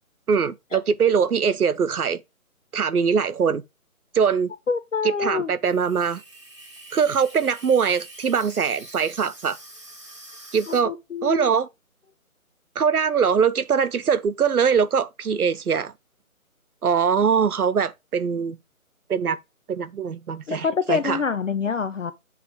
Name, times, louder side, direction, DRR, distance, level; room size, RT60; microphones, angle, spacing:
voice 1, 0.3-2.2 2.7-3.6 4.1-4.5 5.0-6.2 6.9-9.6 10.5-10.9 11.2-11.7 12.8-15.9 16.8-18.6 19.1-19.4 19.7-21.2, right 6 dB, 85° right, 0.8 m, -22 dB
voice 2, 4.7-5.5 10.7-11.5 20.5-22.1, left 5 dB, 60° left, 0.7 m, -26 dB
Water tap faucet / Sink (filling or washing), 5.6-10.8, right 1 dB, 20° right, 1.0 m, -45 dB
7.5 x 3.2 x 4.8 m
figure-of-eight pair, 170°, 43 cm